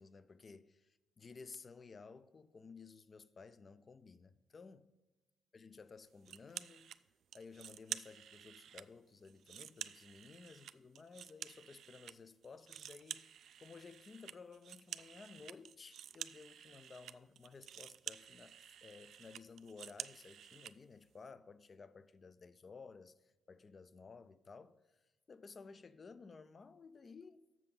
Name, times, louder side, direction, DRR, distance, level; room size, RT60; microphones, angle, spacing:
voice 1, 0.0-4.9 5.5-6.9 7.3-13.2 13.6-25.0 25.3-27.4, left 4 dB, 35° left, 0.5 m, -55 dB
sound 1, 6.2-7.0 7.3-8.9 9.2-12.1 12.4-20.7, right 9 dB, 70° right, 0.3 m, -50 dB
7.4 x 6.6 x 5.5 m
cardioid pair, 90°, 0 cm